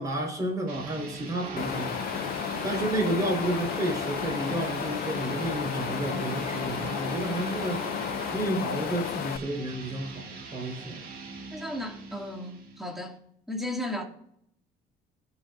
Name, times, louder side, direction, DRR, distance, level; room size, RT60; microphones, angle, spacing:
voice 1, 0.0-1.9 2.6-7.8 8.3-11.0, right 1 dB, 20° right, 4.5 m, -31 dB
sound 1, 0.7-13.2, right 3 dB, 65° right, 3.9 m, -42 dB
sound 2, 1.4-8.4, right 6 dB, 45° right, 1.9 m, -40 dB
Wind, 1.6-9.4, left 13 dB, 65° left, 0.5 m, -33 dB
voice 2, 11.5-13.2 13.5-14.0, left 1 dB, ahead, 2.3 m, -34 dB
20.0 x 7.2 x 2.6 m
cardioid pair, 110°, 17 cm